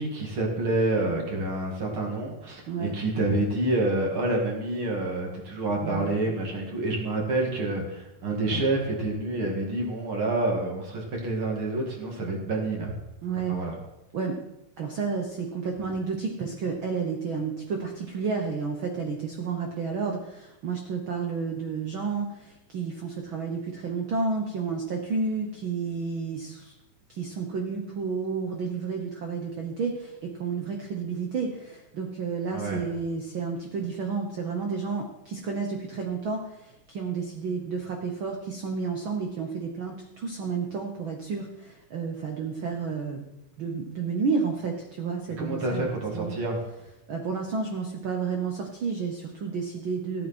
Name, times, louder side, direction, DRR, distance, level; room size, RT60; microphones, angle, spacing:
voice 1, 0.0-12.9 13.5-13.8 32.5-32.9 45.4-46.6, right 2 dB, 45° right, -1 dB, 2.6 m, -28 dB
voice 2, 5.8-6.2 13.2-13.6 14.1-14.4 14.8-26.7 27.1-43.2 43.6-46.4 47.1-50.3, right 5 dB, 70° right, 2 dB, 1.2 m, -31 dB
14.5 x 9.1 x 4.3 m, 0.95 s
omnidirectional pair, 3.8 m